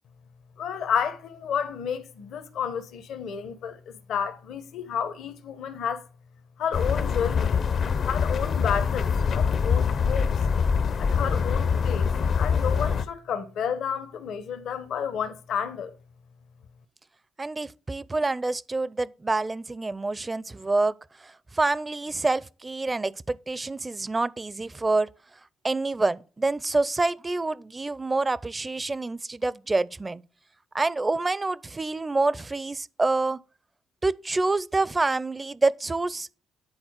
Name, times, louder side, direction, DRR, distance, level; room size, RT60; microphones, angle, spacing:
voice 1, 0.6-6.1 6.6-7.5 8.0-10.4 11.0-12.1 12.4-15.9, left 7 dB, 75° left, 1.1 m, -31 dB
sound 1, 6.7-13.0, left 6 dB, 55° left, 0.7 m, -24 dB
voice 2, 17.4-20.9 21.2-25.1 25.6-30.2 30.7-33.4 34.0-36.3, right 3 dB, 20° right, 0.5 m, -27 dB
9.9 x 4.2 x 6.5 m
cardioid pair, 90°, 0 cm